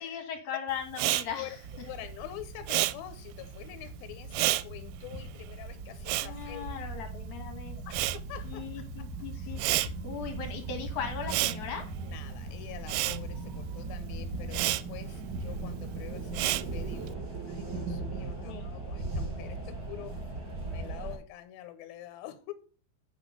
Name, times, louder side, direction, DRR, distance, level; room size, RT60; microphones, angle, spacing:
voice 1, 0.0-1.6 6.2-7.8 8.4-11.9 18.5-18.7, left 7 dB, 60° left, 2.6 m, -38 dB
Respiratory sounds, 0.9-7.4 7.6-17.1, right 17 dB, 90° right, 2.5 m, -32 dB
voice 2, 1.3-6.7 7.8-8.6 9.3-9.6 12.0-17.2 17.5-20.2 20.5-22.5, left 13 dB, 80° left, 2.7 m, -45 dB
sound 1, 1.6-21.2, right 3 dB, 55° right, 1.2 m, -39 dB
8.6 x 5.1 x 5.4 m
omnidirectional pair, 4.3 m